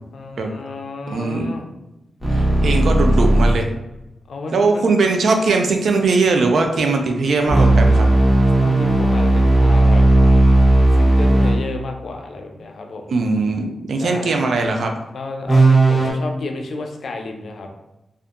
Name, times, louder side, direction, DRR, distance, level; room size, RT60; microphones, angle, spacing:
voice 1, 0.1-1.7 4.3-4.8 8.5-10.0 11.0-13.1 14.0-14.4 15.1-17.7, left 3 dB, 70° left, 3 dB, 0.4 m, -31 dB
voice 2, 1.1-1.6 2.3-3.7 4.5-8.1 13.1-14.9, right 3 dB, 75° right, 4 dB, 0.3 m, -19 dB
sound 1, 2.2-3.6 7.5-11.6 15.4-16.1, right 2 dB, ahead, 1.0 m, -14 dB
2.6 x 2.3 x 2.4 m, 0.96 s
cardioid pair, 65°, 0 cm